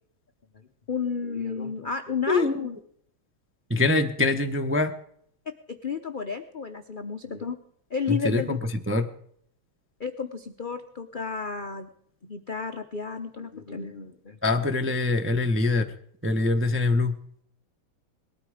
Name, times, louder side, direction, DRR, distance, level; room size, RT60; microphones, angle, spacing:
voice 1, 0.9-2.8 5.7-7.6 7.9-8.6 10.0-11.9 12.2-14.4, left 5 dB, 60° left, 6 dB, 0.5 m, -32 dB
voice 2, 3.7-4.9 8.1-8.6 8.9-9.1 14.4-15.8 16.2-17.2, left 2 dB, 15° right, 5 dB, 0.5 m, -24 dB
20.5 x 13.0 x 4.9 m, 0.66 s
omnidirectional pair, 2.2 m